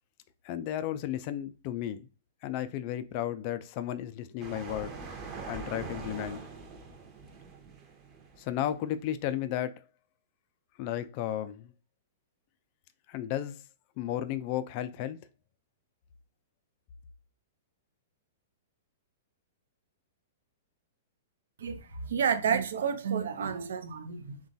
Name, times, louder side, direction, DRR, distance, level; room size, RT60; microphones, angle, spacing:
voice 1, 0.4-2.0 2.4-5.0 5.5-6.4 8.4-9.8 10.8-11.7 13.1-13.6 14.0-15.2, left 11 dB, 45° left, 0.3 m, -33 dB
sound 1, 4.4-8.8, right 4 dB, 30° right, 0.7 m, -43 dB
voice 2, 21.6-24.4, right 7 dB, 70° right, 0.4 m, -30 dB
3.0 x 2.2 x 2.6 m
hypercardioid pair, 115°, 0 cm